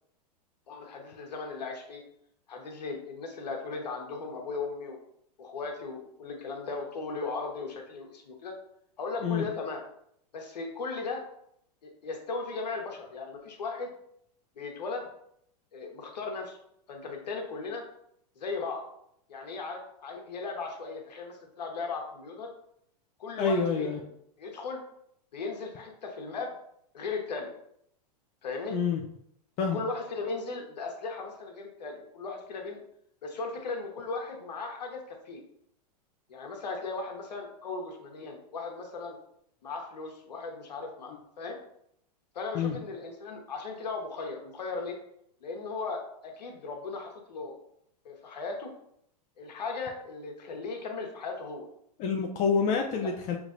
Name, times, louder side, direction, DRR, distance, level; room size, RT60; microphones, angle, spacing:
voice 1, 0.7-2.0 2.5-5.0 5.4-8.5 9.0-9.8 10.3-11.2 11.8-13.9 14.5-15.1 15.7-16.6 16.9-17.8 18.3-18.8 19.3-22.5 23.2-24.1 24.4-24.8 25.3-26.5 26.9-27.5 28.4-28.8 29.6-32.8 33.2-35.4 36.3-39.2 39.6-41.6 42.3-45.0 45.4-47.6 48.0-48.7 49.4-51.7 53.0-53.1, left 4 dB, 85° left, 2 dB, 1.2 m, -37 dB
voice 2, 23.4-24.0 28.7-29.0 29.6-29.8 42.5-42.7 52.0-53.4, left 5 dB, 35° left, 2 dB, 0.6 m, -27 dB
6.0 x 3.2 x 2.6 m, 0.73 s
hypercardioid pair, 125°, 21 cm